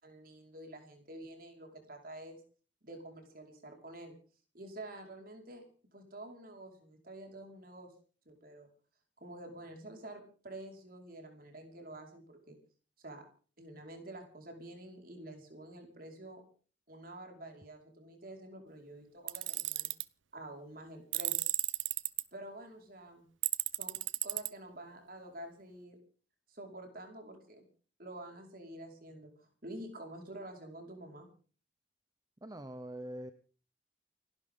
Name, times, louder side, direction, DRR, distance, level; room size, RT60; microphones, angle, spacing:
voice 1, 0.0-2.4 2.8-4.2 4.5-5.7 5.9-7.9 8.3-8.7 9.2-12.6 13.0-13.2 13.6-16.4 16.9-19.9 20.3-21.4 22.3-23.3 23.8-24.0 24.2-26.0 26.5-27.6 28.0-31.3, right 1 dB, 50° right, 3 dB, 5.2 m, -48 dB
Tools, 19.3-20.0 21.1-22.2 23.4-24.5, right 17 dB, 85° right, 0.8 m, -33 dB
voice 2, 32.4-33.3, right 1 dB, 20° right, 9 dB, 1.0 m, -43 dB
29.5 x 12.0 x 3.9 m, 0.40 s
head